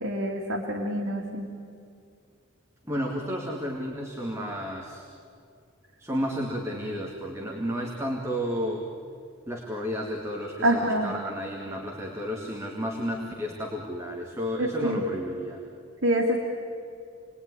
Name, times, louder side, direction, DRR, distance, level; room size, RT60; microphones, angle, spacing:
voice 1, 0.0-1.5 10.6-11.1 14.6-15.0 16.0-16.4, right 1 dB, 80° right, 0 dB, 2.6 m, -26 dB
voice 2, 2.9-5.1 6.0-8.9 9.5-15.6, equal, 15° right, -1 dB, 2.2 m, -32 dB
29.0 x 20.5 x 9.9 m, 2.4 s
head